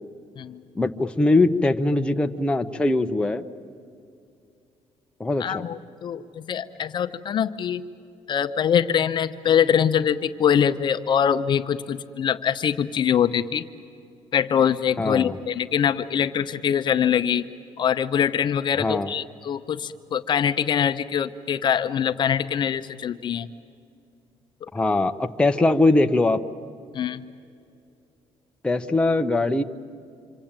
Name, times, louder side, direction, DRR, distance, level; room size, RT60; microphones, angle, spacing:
voice 1, 0.8-3.4 5.2-5.6 15.0-15.4 18.8-19.1 24.7-26.4 28.6-29.6, left 2 dB, 10° left, 5 dB, 0.8 m, -21 dB
voice 2, 5.4-7.8 8.3-13.7 14.3-17.5 17.8-23.5 24.6-24.7 26.9-27.2, left 8 dB, 45° left, 9 dB, 0.7 m, -23 dB
27.0 x 25.0 x 8.9 m, 2.5 s
cardioid pair, 130°, 11 cm